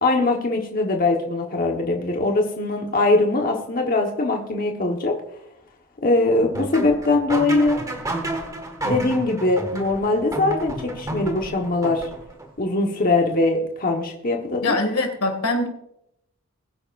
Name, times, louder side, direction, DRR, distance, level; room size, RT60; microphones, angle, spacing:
voice 1, 0.0-5.2 6.0-7.8 8.8-12.1 12.6-14.7, left 2 dB, 40° left, 1 dB, 1.2 m, -21 dB
sound 1, 6.5-12.5, right 1 dB, 15° right, 1.7 m, -30 dB
voice 2, 14.6-15.7, left 2 dB, 85° left, 4 dB, 2.3 m, -23 dB
21.0 x 9.9 x 2.5 m, 0.79 s
head